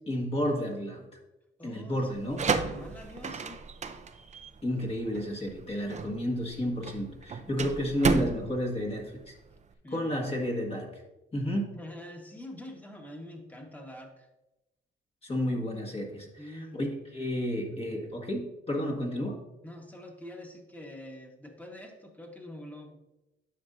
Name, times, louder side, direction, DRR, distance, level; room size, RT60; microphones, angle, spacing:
voice 1, 0.1-1.0 1.6-2.4 4.6-9.3 9.9-11.0 11.3-11.7 15.2-19.4, equal, 30° left, 1 dB, 1.7 m, -31 dB
voice 2, 1.6-2.0 2.5-3.6 7.5-7.7 9.8-10.2 11.7-14.3 16.4-16.8 19.6-22.9, left 1 dB, 10° left, 2 dB, 1.5 m, -45 dB
sound 1, 2.1-9.7, right 5 dB, 35° right, 0.6 m, -33 dB
9.7 x 6.2 x 2.7 m, 0.97 s
cardioid pair, 90°, 20 cm